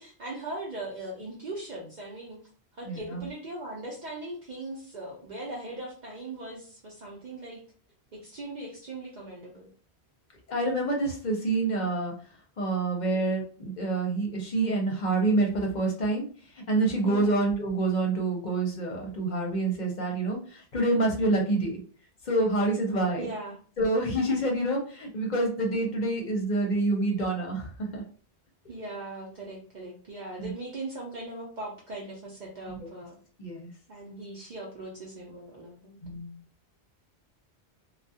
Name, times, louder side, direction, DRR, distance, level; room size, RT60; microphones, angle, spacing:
voice 1, 0.0-2.4 2.7-7.6 8.1-9.7 17.0-17.4 23.2-23.6 28.7-33.2 33.9-36.0, right 2 dB, 50° right, -2 dB, 0.6 m, -39 dB
voice 2, 2.9-3.3 10.5-12.1 12.6-16.3 16.7-21.8 22.2-23.3 23.8-28.0 30.4-30.5 32.7-32.9 33.4-33.7 36.0-36.4, right 2 dB, 50° left, 1 dB, 0.8 m, -27 dB
2.3 x 2.1 x 2.7 m, 0.41 s
omnidirectional pair, 1.1 m